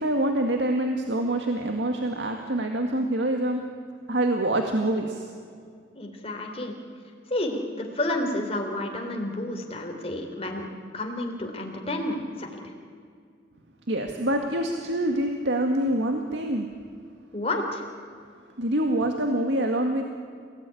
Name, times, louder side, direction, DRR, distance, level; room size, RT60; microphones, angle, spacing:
voice 1, 0.0-3.6 4.1-5.3 13.9-16.7 18.6-20.0, right 1 dB, 80° right, 3 dB, 2.0 m, -25 dB
voice 2, 5.9-6.7 7.3-10.7 10.9-12.7 17.3-17.9, left 1 dB, 35° left, 2 dB, 3.9 m, -30 dB
29.0 x 18.0 x 9.9 m, 2.2 s
head